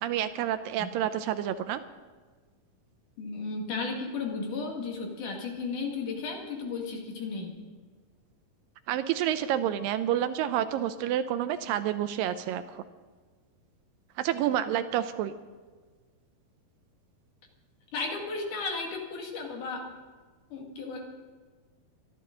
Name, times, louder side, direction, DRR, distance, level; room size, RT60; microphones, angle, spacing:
voice 1, 0.0-1.8 8.9-12.8 14.2-15.3, right 11 dB, 80° right, 11 dB, 2.2 m, -29 dB
voice 2, 3.2-7.5 17.9-19.8 20.5-21.0, left 4 dB, 60° left, 1 dB, 3.3 m, -34 dB
23.5 x 12.0 x 3.8 m, 1.4 s
omnidirectional pair, 4.2 m